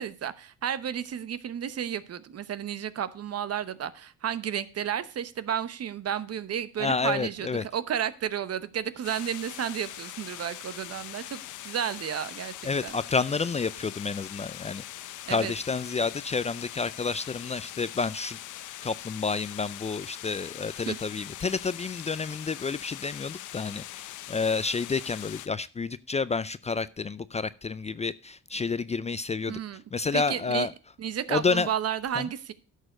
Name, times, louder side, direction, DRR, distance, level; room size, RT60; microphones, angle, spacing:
voice 1, 0.0-13.0 15.3-15.5 20.9-21.0 29.5-29.8 30.1-30.7 31.0-32.5, right 9 dB, 55° right, 0.9 m, -32 dB
voice 2, 6.8-7.7 12.6-14.8 15.3-18.4 18.8-29.6 29.9-30.7 31.3-31.7 32.1-32.3, left 4 dB, 25° left, 0.4 m, -30 dB
sound 1, 9.0-25.5, left 13 dB, 80° left, 0.7 m, -42 dB
11.0 x 6.5 x 5.0 m
cardioid pair, 90°, 30 cm